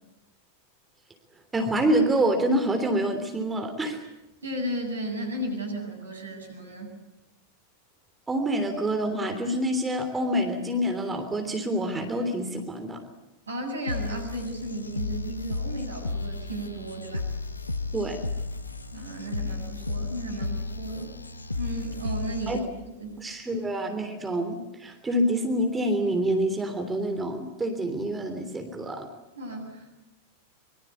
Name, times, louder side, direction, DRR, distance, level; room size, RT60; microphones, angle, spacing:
voice 1, 1.5-4.0 8.3-13.0 17.9-18.2 22.5-22.6 23.2-29.1, right 1 dB, 15° right, 5 dB, 3.3 m, -27 dB
voice 2, 4.4-6.9 13.5-17.3 18.9-21.2 21.6-22.7 23.0-23.2 23.5-23.6 29.4-30.1, right 1 dB, 75° right, 4 dB, 7.8 m, -34 dB
sound 1, 13.9-22.9, left 3 dB, 80° left, 1.1 m, -33 dB
25.0 x 24.0 x 8.5 m, 0.96 s
figure-of-eight pair, 90°, 0 cm